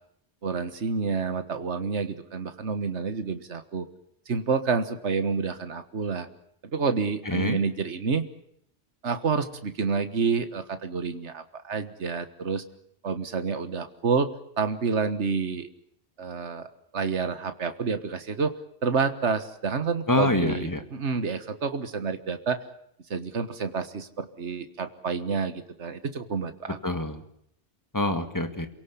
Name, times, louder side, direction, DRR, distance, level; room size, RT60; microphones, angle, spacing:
voice 1, 0.4-3.9 4.3-6.3 6.7-8.3 9.0-12.6 13.0-14.3 14.6-15.7 16.2-16.7 16.9-18.5 18.8-22.6 23.1-26.8, right 5 dB, 75° right, 10 dB, 1.8 m, -28 dB
voice 2, 7.2-7.6 20.1-20.8 26.8-27.2 27.9-28.7, left 1 dB, 15° left, 8 dB, 2.1 m, -26 dB
28.5 x 17.5 x 8.5 m, 0.72 s
omnidirectional pair, 1.2 m